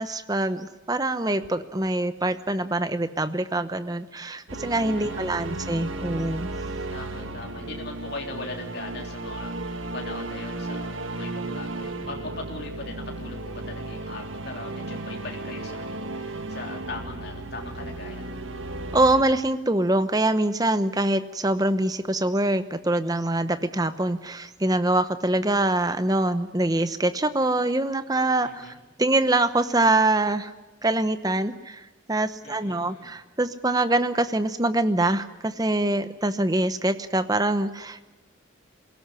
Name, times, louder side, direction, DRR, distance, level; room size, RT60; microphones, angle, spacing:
voice 1, 0.0-6.5 18.9-30.5 30.8-31.8 32.1-38.0, right 2 dB, 20° right, 11 dB, 0.9 m, -24 dB
sound 1, 4.5-19.2, right 2 dB, 80° right, 1.5 m, -34 dB
voice 2, 4.8-5.5 6.9-18.3 28.4-28.8 32.4-33.2, left 2 dB, 55° left, 1 dB, 3.4 m, -40 dB
22.5 x 17.5 x 9.8 m, 1.1 s
head